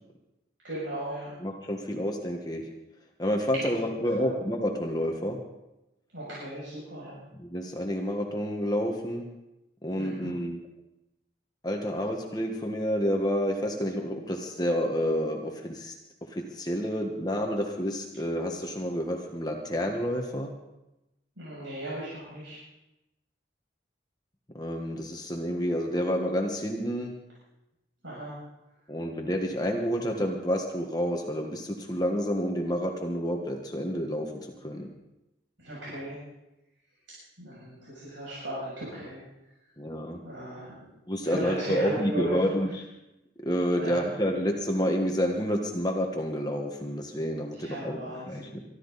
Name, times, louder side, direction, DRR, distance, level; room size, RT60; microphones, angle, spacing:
voice 1, 0.6-1.3 3.8-3.9 4.2-4.3 6.1-7.2 10.0-10.3 21.4-22.6 28.0-28.3 35.6-36.2 37.4-39.2 40.2-40.7 41.2-42.4 43.8-44.1 47.6-48.5, right 1 dB, 85° right, -8 dB, 7.3 m, -36 dB
voice 2, 1.4-2.6 3.2-5.4 7.3-9.2 9.8-10.6 11.6-15.9 16.3-20.5 24.5-27.2 28.9-34.9 39.8-40.2 41.1-42.8 43.4-48.0 48.3-48.6, equal, 20° left, 2 dB, 1.4 m, -29 dB
24.0 x 13.0 x 4.1 m, 0.94 s
head